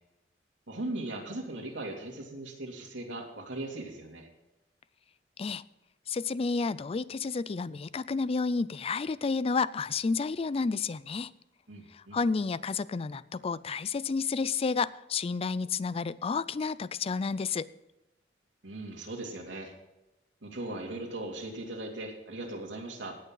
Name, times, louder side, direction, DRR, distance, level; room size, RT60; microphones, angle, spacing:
voice 1, 0.7-4.3 11.7-12.2 18.6-19.7 20.4-23.2, right 2 dB, 85° right, 0 dB, 2.8 m, -39 dB
voice 2, 6.1-11.3 11.9-17.7, left 4 dB, 30° left, 18 dB, 0.4 m, -31 dB
18.0 x 8.2 x 3.9 m, 0.96 s
head